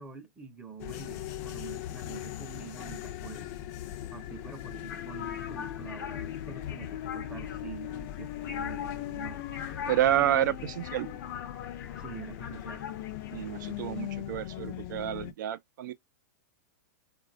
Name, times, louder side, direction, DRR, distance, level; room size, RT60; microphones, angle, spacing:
voice 1, 0.0-3.5 3.8-9.5 12.0-12.8, right 5 dB, 10° right, 0.6 m, -46 dB
sound 1, 0.8-15.3, left 12 dB, 50° left, 0.4 m, -39 dB
sound 2, 4.9-14.0, left 7 dB, 75° left, 0.7 m, -43 dB
voice 2, 9.9-11.1 13.3-15.9, right 12 dB, 65° right, 0.4 m, -29 dB
4.0 x 2.3 x 2.4 m
hypercardioid pair, 140°, 11 cm